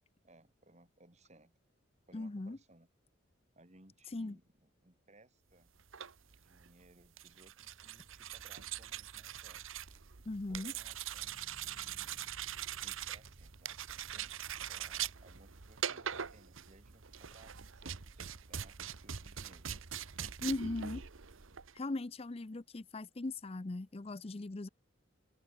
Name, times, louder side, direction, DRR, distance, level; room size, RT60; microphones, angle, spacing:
voice 1, 0.2-1.5 2.1-2.9 3.5-5.7 6.4-9.7 10.5-12.3 12.8-14.3 14.7-19.8, right 1 dB, 35° right, 3.3 m, -63 dB
voice 2, 2.1-2.6 4.1-4.4 10.3-10.7 20.4-21.1 21.7-24.7, left 2 dB, 30° left, 0.5 m, -39 dB
sound 1, 5.8-21.8, right 9 dB, 80° right, 1.1 m, -43 dB
sound 2, 11.2-16.1, equal, 10° left, 2.0 m, -66 dB
head